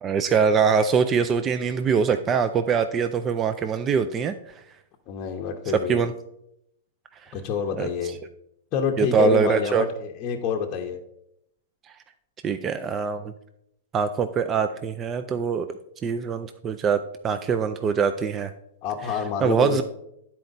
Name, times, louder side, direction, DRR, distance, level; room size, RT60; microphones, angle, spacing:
voice 1, 0.0-4.3 5.7-6.1 7.3-7.4 7.8-7.9 9.0-9.8 12.4-13.3 13.9-15.7 16.0-18.5 19.4-19.8, right 6 dB, 20° right, 9 dB, 0.3 m, -23 dB
voice 2, 5.1-6.0 7.3-8.2 8.7-11.0 18.8-19.8, left 7 dB, 35° left, 2 dB, 0.7 m, -28 dB
9.6 x 4.4 x 3.9 m, 0.79 s
hypercardioid pair, 140°, 0 cm